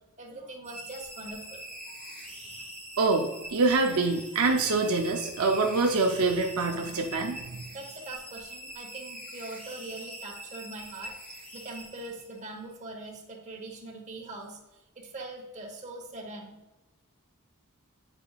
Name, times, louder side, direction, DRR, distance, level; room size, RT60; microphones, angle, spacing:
voice 1, 0.2-2.2 7.7-14.6 14.9-16.5, right 2 dB, 30° right, 0 dB, 1.1 m, -42 dB
sound 1, 0.6-12.5, right 1 dB, 5° left, 1.7 m, -44 dB
voice 2, 3.0-7.6, right 3 dB, 75° right, 2 dB, 0.6 m, -25 dB
8.5 x 4.9 x 2.4 m, 1.1 s
head